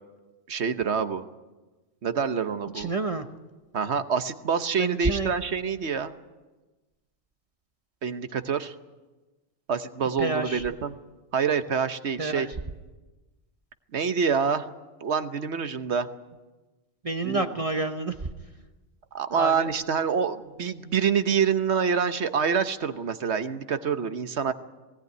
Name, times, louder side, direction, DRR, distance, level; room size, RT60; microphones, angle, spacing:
voice 1, 0.5-1.2 2.0-2.9 3.7-6.1 8.0-8.7 9.7-11.0 11.3-12.5 13.9-14.7 15.0-16.1 17.2-17.5 19.1-24.5, right 6 dB, 75° right, 10 dB, 1.3 m, -26 dB
voice 2, 2.7-3.3 4.8-5.3 10.2-10.6 12.2-12.5 17.0-18.3 19.3-19.7, right 3 dB, 35° right, 7 dB, 1.0 m, -29 dB
19.5 x 17.5 x 9.4 m, 1.2 s
omnidirectional pair, 1.2 m